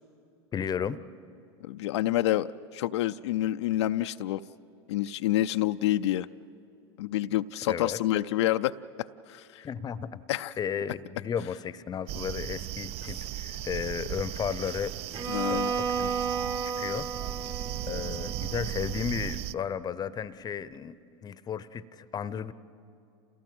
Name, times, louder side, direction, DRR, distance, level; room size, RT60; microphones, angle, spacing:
voice 1, 0.5-1.0 7.7-8.0 9.6-10.2 10.6-16.1 16.6-17.1 17.9-21.0 21.2-22.5, left 7 dB, 30° left, 17 dB, 0.7 m, -34 dB
voice 2, 1.6-4.4 4.9-6.3 7.0-8.7 9.0-9.6 10.3-10.5 15.3-15.7, left 14 dB, 75° left, 10 dB, 0.5 m, -28 dB
sound 1, 12.1-19.5, right 13 dB, 45° right, 0.5 m, -36 dB
Bowed string instrument, 15.1-19.1, right 6 dB, 30° right, 1.1 m, -33 dB
28.0 x 16.5 x 7.7 m, 2.7 s
hypercardioid pair, 95°, 14 cm